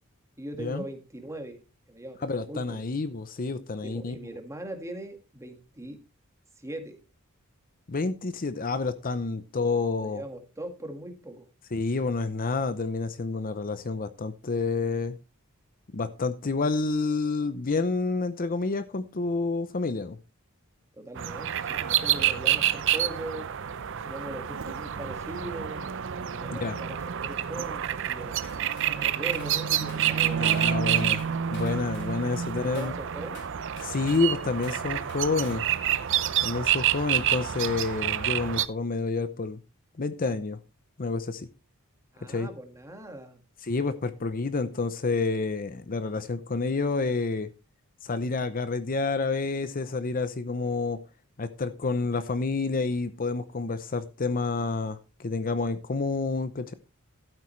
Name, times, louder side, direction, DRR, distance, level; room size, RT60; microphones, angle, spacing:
voice 1, 0.4-1.6 1.9-2.8 3.8-6.0 6.6-7.0 10.0-11.5 20.9-23.5 24.0-25.9 26.3-28.4 28.9-31.0 32.7-33.4 42.1-43.4, right 1 dB, 15° right, 1.8 m, -40 dB
voice 2, 2.2-4.2 7.9-10.2 11.7-15.2 15.9-20.2 26.6-26.8 30.4-31.2 31.5-32.9 33.8-35.6 36.4-39.6 40.0-40.6 41.0-41.5 42.3-42.5 43.6-47.5 48.0-51.0 51.4-56.7, left 3 dB, 40° left, 0.7 m, -29 dB
sound 1, 21.2-38.7, right 10 dB, 60° right, 0.6 m, -28 dB
sound 2, 28.4-28.9 29.3-29.6 29.9-30.7 31.0-32.1 32.7-33.0 33.3-34.3 34.6-34.8 35.1-35.7, left 4 dB, 55° left, 4.3 m, -50 dB
12.5 x 9.0 x 3.2 m
head